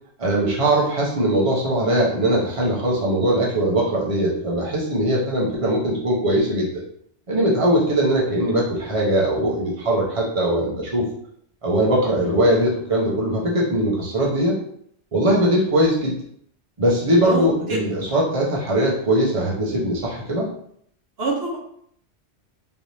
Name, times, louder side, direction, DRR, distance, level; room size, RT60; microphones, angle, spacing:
voice 1, 0.2-6.8 7.3-11.0 11.6-14.6 15.1-16.1 16.8-20.5, right 1 dB, 30° right, -4 dB, 0.9 m, -20 dB
voice 2, 17.2-17.8 21.2-21.6, right 2 dB, 65° right, -4 dB, 1.0 m, -25 dB
3.4 x 3.0 x 2.7 m, 0.67 s
omnidirectional pair, 1.1 m